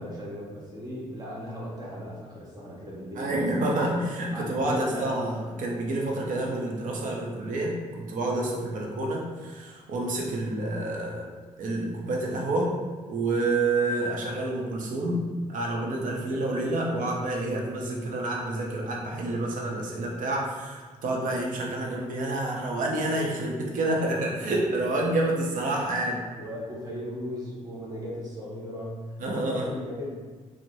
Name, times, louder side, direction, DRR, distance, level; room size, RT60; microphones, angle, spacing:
voice 1, 0.0-3.4 4.3-5.3 26.4-30.1, equal, 30° right, -6 dB, 1.2 m, -37 dB
voice 2, 3.2-11.3 11.6-12.7 13.1-26.2 29.2-29.7, right 2 dB, 75° right, -2 dB, 0.7 m, -28 dB
4.6 x 2.1 x 2.7 m, 1.4 s
cardioid pair, 100°, 14 cm